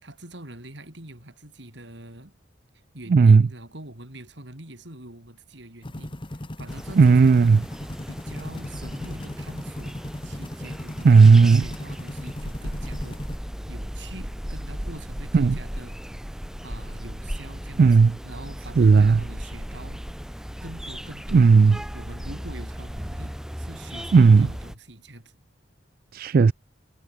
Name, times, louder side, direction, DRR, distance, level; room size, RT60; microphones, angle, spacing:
voice 1, 0.0-2.4 2.9-7.4 8.1-13.2 13.7-16.0 16.6-17.9 18.2-20.0 20.6-21.5 21.9-25.3, right 1 dB, 65° right, 4.6 m, -44 dB
voice 2, 3.1-3.5 7.0-7.6 11.0-11.6 15.3-15.6 17.8-18.1 18.8-19.2 21.3-21.8 24.1-24.5 26.1-26.5, right 4 dB, 50° right, 0.3 m, -14 dB
sound 1, 5.8-13.4, left 1 dB, 25° left, 1.3 m, -37 dB
sound 2, 6.7-24.7, equal, 5° right, 0.7 m, -36 dB
head